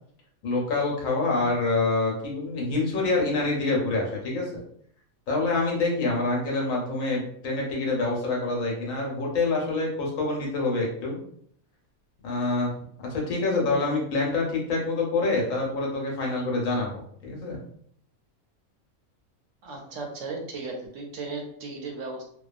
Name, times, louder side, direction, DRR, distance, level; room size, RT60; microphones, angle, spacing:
voice 1, 0.4-4.5 5.3-11.2 12.2-12.7 13.0-17.6, left 3 dB, 75° left, -1 dB, 1.1 m, -26 dB
voice 2, 19.6-22.3, right 3 dB, 70° right, 1 dB, 0.9 m, -36 dB
2.6 x 2.2 x 2.4 m, 0.65 s
omnidirectional pair, 1.5 m